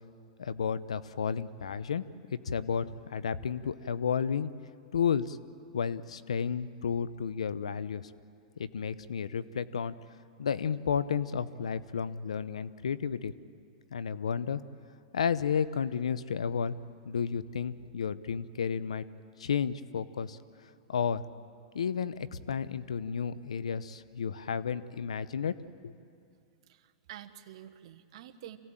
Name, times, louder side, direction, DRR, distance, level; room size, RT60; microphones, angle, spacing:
voice 1, 0.4-4.5 4.9-5.4 5.7-8.1 8.6-9.9 10.4-13.3 13.9-14.6 15.1-16.7 17.0-19.0 19.4-20.4 20.9-21.2 21.7-25.6 25.8-25.9, left 7 dB, 90° left, 16 dB, 0.8 m, -32 dB
voice 2, 26.7-28.6, right 12 dB, 65° right, 9 dB, 1.3 m, -48 dB
26.5 x 16.5 x 9.0 m, 2.4 s
hypercardioid pair, 125°, 3 cm